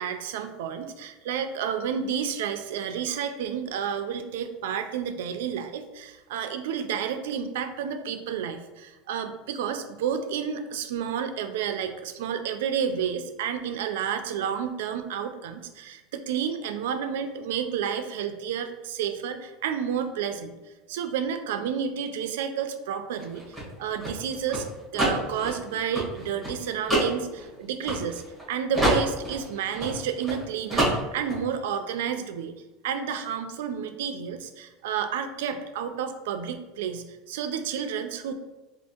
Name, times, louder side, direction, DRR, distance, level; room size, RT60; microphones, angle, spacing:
voice 1, 0.0-20.6 20.9-23.4 23.8-24.7 24.9-28.2 28.5-32.5 32.8-38.3, right 8 dB, 90° right, 8 dB, 0.4 m, -30 dB
sound 1, 23.1-28.4 28.7-30.4 30.7-31.4, right 1 dB, 5° right, 1.5 m, -27 dB
4.5 x 2.4 x 2.8 m, 1.1 s
supercardioid pair, 170°, 0 cm